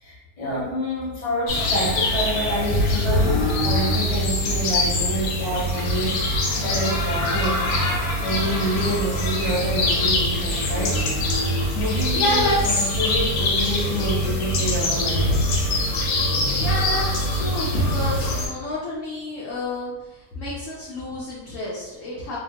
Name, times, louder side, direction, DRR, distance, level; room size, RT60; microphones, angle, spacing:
voice 1, 0.0-6.2 6.5-7.6 8.2-11.0 11.7-15.4, equal, 30° left, -8 dB, 1.0 m, -27 dB
sound 1, 1.5-18.5, left 1 dB, 85° left, 1.3 m, -23 dB
voice 2, 12.1-12.6 16.5-22.4, left 1 dB, 65° left, -6 dB, 0.9 m, -29 dB
2.8 x 2.2 x 2.7 m, 1.0 s
omnidirectional pair, 1.8 m